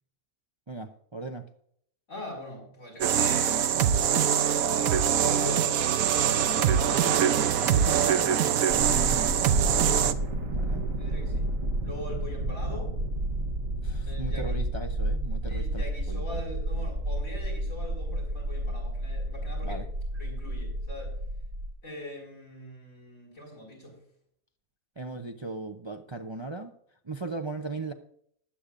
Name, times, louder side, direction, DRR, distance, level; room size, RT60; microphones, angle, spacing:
voice 1, 0.7-1.4 6.3-8.7 10.5-10.9 13.8-16.2 19.6-19.9 25.0-26.7 27.0-27.9, right 3 dB, 30° right, 5 dB, 0.6 m, -38 dB
voice 2, 2.1-4.0 4.4-5.7 6.3-7.2 9.6-10.0 11.0-11.5 11.8-12.9 14.0-14.6 15.5-19.8 20.1-21.2 21.8-24.0, left 1 dB, 75° left, 0 dB, 6.3 m, -41 dB
sound 1, 3.0-10.1, right 9 dB, 90° right, 1.2 m, -23 dB
sound 2, 8.7-21.7, right 1 dB, 70° right, 1.6 m, -31 dB
20.0 x 8.4 x 2.5 m, 0.66 s
omnidirectional pair, 1.4 m